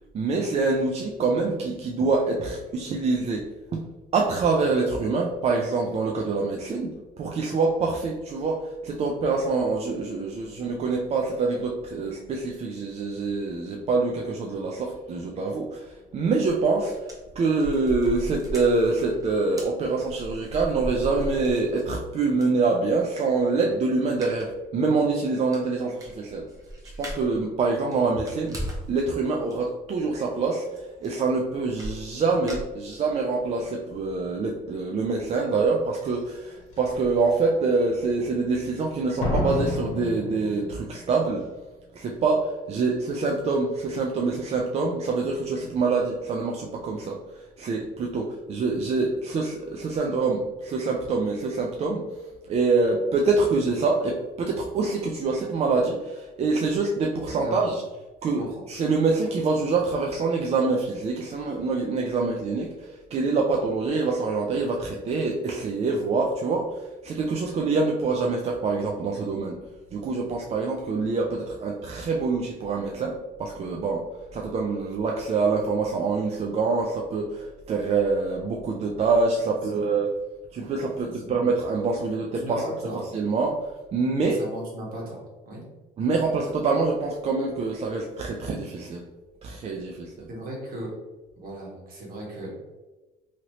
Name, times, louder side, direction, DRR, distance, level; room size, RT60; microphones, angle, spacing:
voice 1, 0.1-3.5 4.1-17.1 17.4-26.5 27.0-41.5 41.9-52.0 52.5-57.8 58.2-69.6 69.9-74.0 74.3-80.1 80.5-82.6 83.1-84.4 86.0-89.0 89.4-90.3, right 3 dB, 40° right, 0 dB, 0.4 m, -25 dB
sound 1, 16.6-16.7 16.9-22.0 22.4-22.5 24.2-24.5 24.8-24.9 25.3-25.4 25.5-27.4 27.8-28.9 29.3-29.6 30.8-30.9 31.0-31.4 31.8-33.2 33.7-33.8 34.1-34.2, right 1 dB, 20° right, 0.8 m, -36 dB
Slam, 36.0-36.1 36.8-37.1 39.2-41.1 41.3-41.4, left 2 dB, 45° left, 1.1 m, -29 dB
voice 2, 57.3-57.8 58.4-58.6 79.7-79.9 80.9-81.4 82.4-83.0 84.2-85.6 90.3-91.0 91.4-92.5, right 1 dB, 60° right, -3 dB, 1.4 m, -37 dB
2.9 x 2.8 x 2.8 m, 1.2 s
cardioid pair, 110°, 17 cm